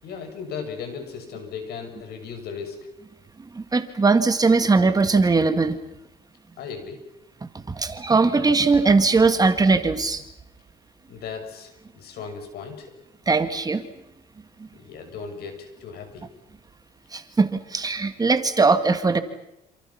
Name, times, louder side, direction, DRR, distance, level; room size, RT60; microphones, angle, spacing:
voice 1, 0.0-2.8 6.6-7.0 11.1-12.9 14.7-16.3, left 6 dB, 70° left, 6 dB, 6.8 m, -36 dB
voice 2, 3.5-5.8 7.7-10.2 13.3-13.8 17.1-19.2, right 4 dB, 20° right, 9 dB, 2.0 m, -20 dB
28.5 x 27.5 x 5.9 m, 0.86 s
cardioid pair, 110°, 17 cm